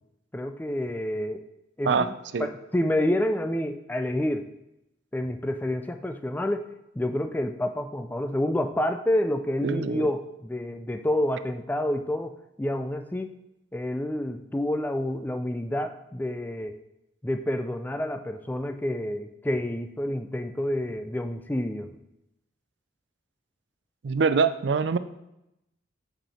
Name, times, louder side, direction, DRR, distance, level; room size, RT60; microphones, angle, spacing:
voice 1, 0.3-1.5 1.8-2.1 2.4-4.5 5.1-6.7 7.0-13.3 13.7-16.8 17.2-22.0, left 1 dB, 10° left, 7 dB, 0.3 m, -28 dB
voice 2, 1.9-2.5 9.6-10.1 24.0-25.0, right 5 dB, 60° right, 12 dB, 0.4 m, -24 dB
7.3 x 5.5 x 4.3 m, 0.86 s
head